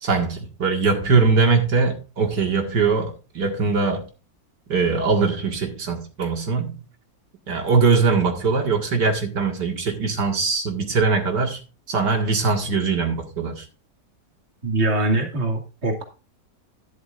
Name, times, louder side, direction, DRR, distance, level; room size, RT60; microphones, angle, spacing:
voice 1, 0.0-4.0 4.7-6.7 7.5-11.6 11.9-13.6, right 4 dB, 80° right, 2.5 m, -21 dB
voice 2, 14.6-16.0, right 2 dB, 40° right, 2.4 m, -23 dB
12.5 x 11.0 x 2.5 m
omnidirectional pair, 1.8 m